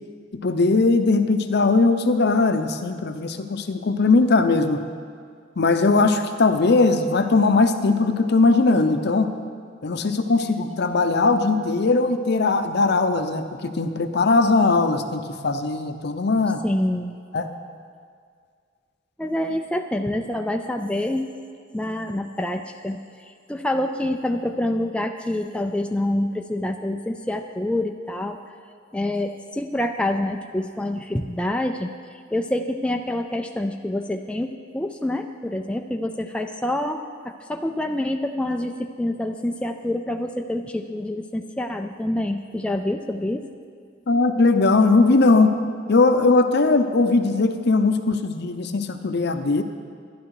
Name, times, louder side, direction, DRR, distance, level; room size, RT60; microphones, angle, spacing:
voice 1, 0.3-4.8 5.6-9.3 9.8-16.6 17.3-17.5 44.1-45.6 45.9-49.6, left 3 dB, 55° left, 8 dB, 0.7 m, -19 dB
voice 2, 16.6-17.2 19.2-21.3 21.7-28.4 28.9-31.9 32.3-43.5, left 1 dB, 5° left, 4 dB, 0.4 m, -27 dB
12.0 x 11.0 x 4.8 m, 2.1 s
head